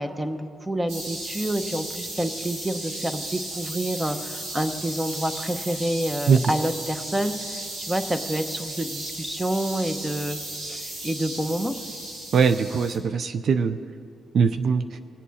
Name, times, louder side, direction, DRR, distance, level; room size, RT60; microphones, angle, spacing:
voice 1, 0.0-10.4 10.7-11.7, right 1 dB, 10° right, 9 dB, 0.9 m, -28 dB
sound 1, 0.9-13.0, right 1 dB, 85° right, 2.4 m, -35 dB
voice 2, 12.3-13.8 14.3-15.0, right 6 dB, 60° right, 11 dB, 0.4 m, -21 dB
22.0 x 8.2 x 4.2 m, 2.5 s
cardioid pair, 85°, 0 cm